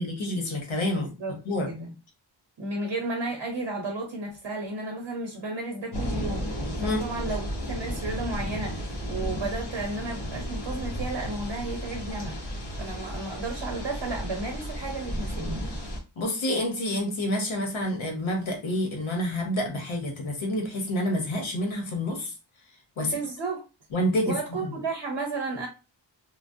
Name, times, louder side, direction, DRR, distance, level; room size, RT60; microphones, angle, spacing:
voice 1, 0.0-1.1 1.4-1.7 6.8-7.0 16.2-22.3 23.0-23.2 23.9-24.7, left 1 dB, 80° left, 1.1 m, -28 dB
voice 2, 0.9-1.4 1.6-1.9 2.6-12.4 12.8-15.7 23.0-23.6 24.2-25.7, right 2 dB, 70° right, 0.9 m, -33 dB
sound 1, 5.9-16.0, equal, 55° left, 1.0 m, -33 dB
3.0 x 2.1 x 2.6 m
wide cardioid pair, 85°, 47 cm